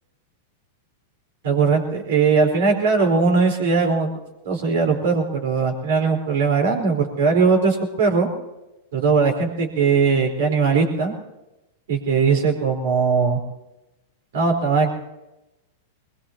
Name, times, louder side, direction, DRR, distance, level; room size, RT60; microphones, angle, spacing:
voice 1, 1.4-4.1 4.4-8.3 8.9-11.1 11.9-13.4 14.3-15.0, right 5 dB, 65° right, 2 dB, 4.2 m, -19 dB
21.5 x 21.0 x 2.9 m, 0.97 s
hypercardioid pair, 100°, 0 cm